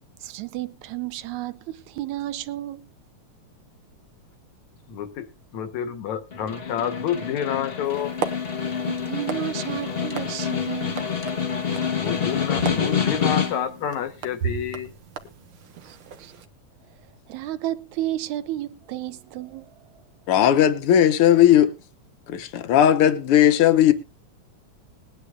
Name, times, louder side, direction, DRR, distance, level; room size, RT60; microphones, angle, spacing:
voice 1, 0.2-2.9 8.7-11.2 15.8-16.3 17.3-19.8, right 14 dB, 75° right, 2.2 m, -32 dB
voice 2, 4.9-8.1 11.9-14.9, left 9 dB, 75° left, 2.5 m, -29 dB
Snare drum, 6.3-13.8, left 7 dB, 35° left, 0.8 m, -27 dB
sound 1, 7.8-16.4, right 7 dB, 55° right, 1.6 m, -37 dB
voice 3, 20.3-21.7 22.3-23.9, left 10 dB, 60° left, 1.8 m, -17 dB
21.0 x 9.9 x 2.5 m
omnidirectional pair, 3.4 m